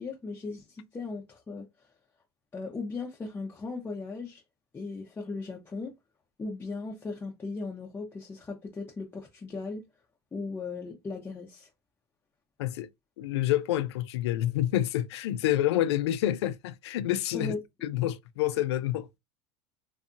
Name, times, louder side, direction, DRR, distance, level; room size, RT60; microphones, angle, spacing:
voice 1, 0.0-1.6 2.5-4.4 4.7-5.9 6.4-9.8 10.3-11.7 17.3-17.6, left 3 dB, 15° left, 0.6 m, -37 dB
voice 2, 13.2-17.5 17.8-19.2, left 13 dB, 85° left, 0.4 m, -28 dB
2.7 x 2.3 x 2.5 m
supercardioid pair, 125°, 14 cm